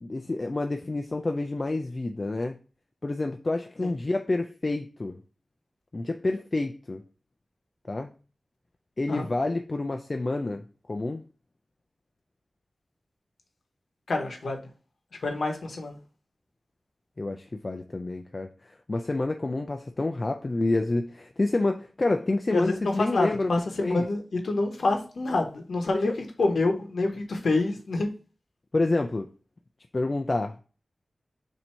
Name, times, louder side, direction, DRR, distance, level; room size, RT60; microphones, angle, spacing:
voice 1, 0.0-2.6 3.0-5.2 5.9-7.0 7.9-8.1 9.0-11.2 17.2-23.5 23.8-24.1 25.9-26.2 28.7-29.3 29.9-30.6, left 2 dB, 40° left, 0.3 m, -28 dB
voice 2, 14.1-14.6 15.2-16.0 22.5-26.1 26.4-28.1, left 2 dB, 85° left, 0.9 m, -27 dB
4.4 x 2.7 x 4.2 m
wide cardioid pair, 85°, 0 cm